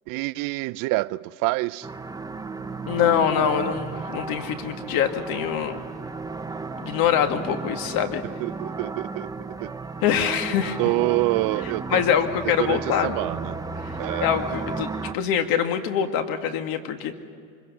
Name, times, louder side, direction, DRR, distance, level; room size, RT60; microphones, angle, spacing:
voice 1, 0.1-1.9 8.4-9.3 9.6-9.7 10.6-12.0 12.4-13.6 14.0-14.3, right 22 dB, 50° right, 0.5 m, -27 dB
sound 1, 1.8-15.1, right 4 dB, 10° right, 0.7 m, -34 dB
voice 2, 2.9-5.8 6.8-8.2 10.0-10.8 11.9-13.2 13.8-13.9 14.2-17.2, left 8 dB, 55° left, 2.1 m, -24 dB
24.5 x 22.5 x 5.7 m
hypercardioid pair, 90°, 41 cm